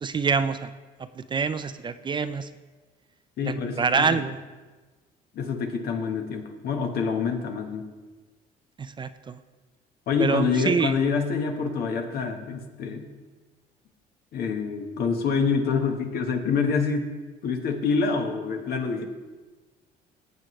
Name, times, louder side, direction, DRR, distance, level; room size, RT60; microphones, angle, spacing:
voice 1, 0.0-0.7 1.2-2.5 3.4-4.4 8.8-9.4 10.2-10.9, right 5 dB, 25° right, 11 dB, 0.5 m, -26 dB
voice 2, 3.4-4.2 5.3-7.9 10.1-13.1 14.3-17.1 17.4-19.1, left 5 dB, 65° left, 5 dB, 1.4 m, -26 dB
17.5 x 7.8 x 3.2 m, 1.3 s
cardioid pair, 110°, 17 cm